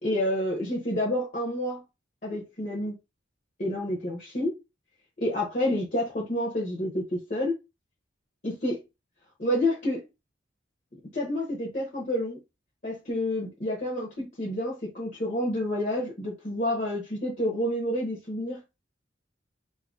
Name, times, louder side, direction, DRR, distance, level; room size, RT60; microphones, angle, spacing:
voice 1, 0.0-1.8 2.2-2.9 3.6-4.5 5.2-7.6 8.4-8.8 9.4-10.0 11.1-12.4 12.8-18.6, left 1 dB, 45° left, 0.9 m, -29 dB
2.7 x 2.6 x 3.7 m
head